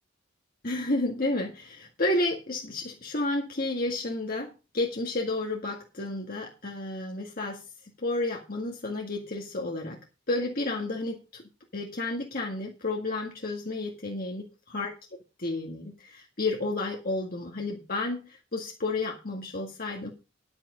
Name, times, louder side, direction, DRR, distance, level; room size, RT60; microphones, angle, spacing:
voice 1, 0.6-7.6 8.0-10.0 10.3-11.4 11.7-14.5 14.7-14.9 15.4-20.1, left 2 dB, 50° left, 1 dB, 1.9 m, -31 dB
10.5 x 9.0 x 4.9 m, 0.30 s
head